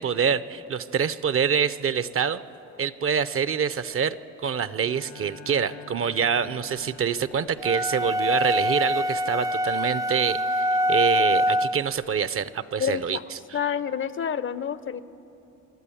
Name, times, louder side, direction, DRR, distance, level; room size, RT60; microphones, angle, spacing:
voice 1, 0.0-2.4 2.8-13.2, right 7 dB, 45° right, 15 dB, 0.7 m, -26 dB
Bowed string instrument, 4.5-7.6, left 11 dB, 65° left, 1.1 m, -47 dB
sound 1, 7.6-11.9, equal, 10° right, 0.3 m, -24 dB
voice 2, 12.8-13.2 13.5-15.0, left 8 dB, 40° left, 16 dB, 0.6 m, -28 dB
25.5 x 12.0 x 8.6 m, 2.9 s
cardioid pair, 90°, 30 cm